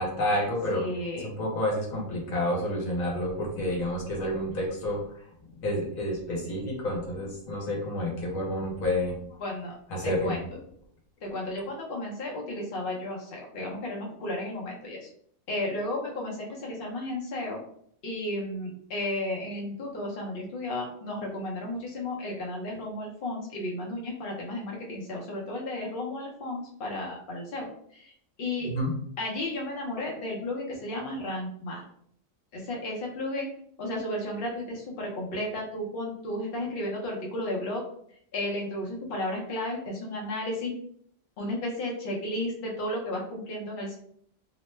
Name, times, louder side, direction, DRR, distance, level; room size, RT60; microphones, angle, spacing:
voice 1, 0.0-0.8 1.2-5.0 5.6-9.4 9.9-10.4 28.6-28.9, left 1 dB, 75° left, -1 dB, 1.2 m, -29 dB
voice 2, 0.7-1.3 9.4-9.7 10.0-10.4 11.2-15.1 15.5-17.6 18.0-28.1 28.4-28.7 29.2-31.8 32.5-33.5 33.8-37.8 38.3-40.8 41.4-44.0, left 1 dB, 50° left, -2 dB, 0.8 m, -33 dB
2.9 x 2.1 x 3.1 m, 0.65 s
omnidirectional pair, 1.4 m